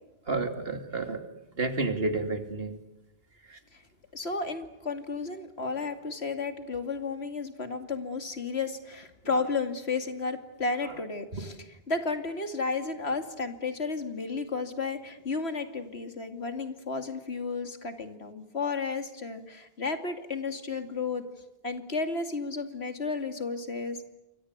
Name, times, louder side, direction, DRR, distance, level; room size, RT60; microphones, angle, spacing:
voice 1, 0.3-1.2 1.6-2.8 3.5-3.6 9.3-9.4 10.8-10.9 11.3-11.4, right 3 dB, 70° right, 8 dB, 3.1 m, -30 dB
voice 2, 4.1-21.3 21.6-24.0, left 4 dB, 90° left, 8 dB, 2.9 m, -33 dB
28.0 x 24.5 x 8.2 m, 0.99 s
omnidirectional pair, 1.0 m